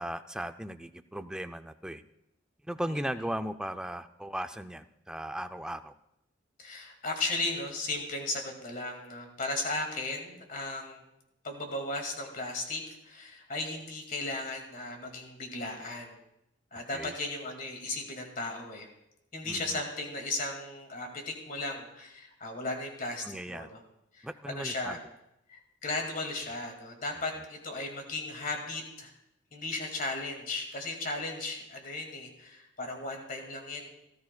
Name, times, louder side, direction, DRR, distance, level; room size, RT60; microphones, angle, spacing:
voice 1, 0.0-2.0 2.6-5.9 16.9-17.1 19.4-19.8 23.2-23.7 24.2-25.0, right 1 dB, 5° right, 9 dB, 0.4 m, -37 dB
voice 2, 6.6-11.0 11.4-16.2 16.7-18.9 19.3-23.8 24.1-25.0 25.5-29.1 29.5-33.9, left 2 dB, 45° left, 3 dB, 2.1 m, -36 dB
18.5 x 13.0 x 2.2 m, 0.84 s
head